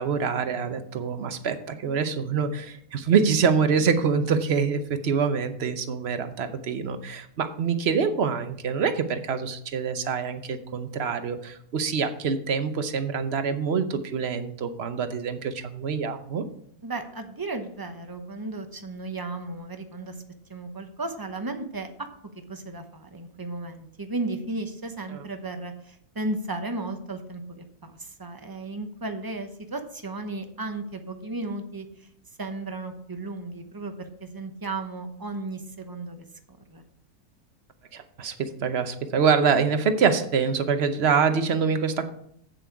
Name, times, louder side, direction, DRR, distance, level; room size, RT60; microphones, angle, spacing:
voice 1, 0.0-16.4 25.1-25.2 37.9-42.1, right 6 dB, 50° right, 9 dB, 0.9 m, -25 dB
voice 2, 16.8-20.1 20.5-32.1 32.4-36.2 36.7-36.9, right 2 dB, 20° right, 6 dB, 0.7 m, -35 dB
8.4 x 7.5 x 4.7 m, 0.70 s
omnidirectional pair, 1.7 m